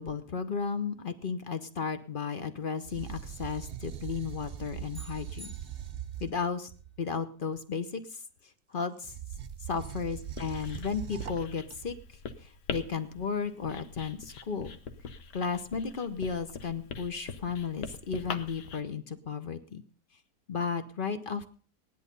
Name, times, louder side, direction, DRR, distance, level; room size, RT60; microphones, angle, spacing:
voice 1, 0.0-5.5 6.2-6.7 7.0-8.2 8.7-9.1 9.7-12.0 12.4-14.8 15.3-19.8 20.5-21.5, left 5 dB, 40° left, 10 dB, 0.9 m, -34 dB
sound 1, 2.8-7.0 9.0-12.1, right 10 dB, 50° right, 0.7 m, -41 dB
sound 2, 4.9-6.3, equal, 15° left, 1.5 m, -51 dB
Writing, 10.2-18.8, left 6 dB, 70° left, 1.6 m, -43 dB
16.0 x 10.5 x 5.3 m, 0.41 s
omnidirectional pair, 1.9 m